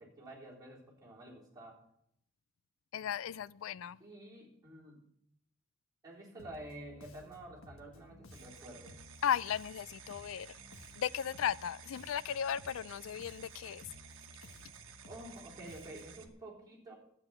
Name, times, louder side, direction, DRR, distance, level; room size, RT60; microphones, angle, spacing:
voice 1, 0.0-1.8 4.0-5.0 6.0-9.0 15.1-16.9, right 1 dB, 20° right, 3.7 m, -50 dB
voice 2, 2.9-4.0 9.2-10.6 11.0-13.8, left 8 dB, 70° left, 0.3 m, -36 dB
Bass guitar, 6.4-16.3, left 2 dB, 90° left, 1.1 m, -56 dB
sound 1, 8.3-16.3, right 8 dB, 70° right, 1.3 m, -55 dB
11.5 x 8.8 x 5.7 m
head